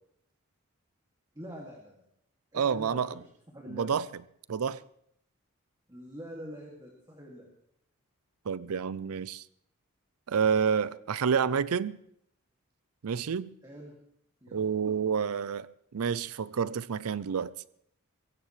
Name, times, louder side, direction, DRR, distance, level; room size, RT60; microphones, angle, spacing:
voice 1, 1.3-2.0 2.5-3.2 3.5-4.0 5.9-7.5 13.6-13.9 14.4-14.9, equal, 15° right, 2.3 m, -45 dB
voice 2, 2.5-3.1 3.7-4.1 4.5-4.8 8.5-9.4 10.3-12.0 13.0-13.5 14.5-15.7 15.9-17.5, right 6 dB, 85° right, 0.5 m, -29 dB
23.0 x 16.0 x 3.2 m
head